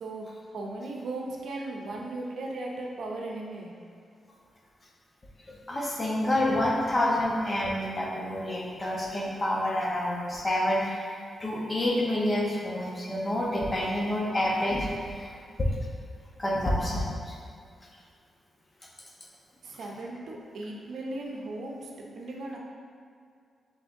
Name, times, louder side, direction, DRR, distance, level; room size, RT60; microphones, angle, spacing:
voice 1, 0.5-3.7 19.6-21.9 22.2-22.6, right 2 dB, 75° right, -1 dB, 0.6 m, -37 dB
voice 2, 5.5-15.4 16.4-17.4, left 1 dB, 25° left, -3 dB, 0.8 m, -28 dB
6.0 x 3.3 x 2.6 m, 2.2 s
wide cardioid pair, 130°, 0 cm